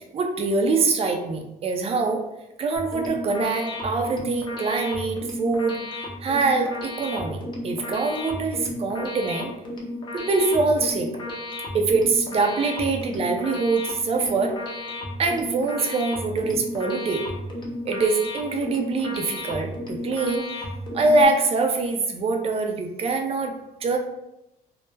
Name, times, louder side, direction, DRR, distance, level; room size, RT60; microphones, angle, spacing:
voice 1, 0.1-2.2 2.6-5.8 6.2-9.5 10.1-11.1 11.7-14.5 15.2-17.2 17.9-20.6 20.9-23.5 23.8-24.0, right 3 dB, 35° right, 3 dB, 0.4 m, -24 dB
sound 1, 2.8-21.3, left 1 dB, 25° left, 0.6 m, -34 dB
2.1 x 2.1 x 3.2 m, 0.89 s
cardioid pair, 110°, 17 cm